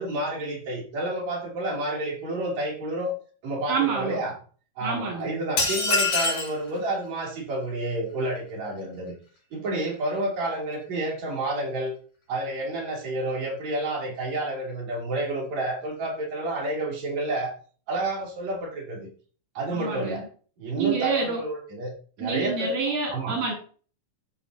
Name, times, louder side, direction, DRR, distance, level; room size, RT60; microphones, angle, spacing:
voice 1, 0.0-3.1 3.4-4.4 4.8-9.1 9.5-11.9 12.3-17.5 17.9-19.1 19.5-20.2 20.6-21.9 22.2-22.7 23.1-23.4, right 1 dB, 60° right, -3 dB, 4.5 m, -30 dB
voice 2, 3.7-4.2 4.8-5.3 19.7-20.2 20.8-21.4 22.2-23.5, right 5 dB, 75° right, -2 dB, 4.3 m, -27 dB
sound 1, 5.6-6.6, left 3 dB, 45° left, 4.2 m, -24 dB
14.0 x 6.7 x 2.8 m, 0.41 s
omnidirectional pair, 3.7 m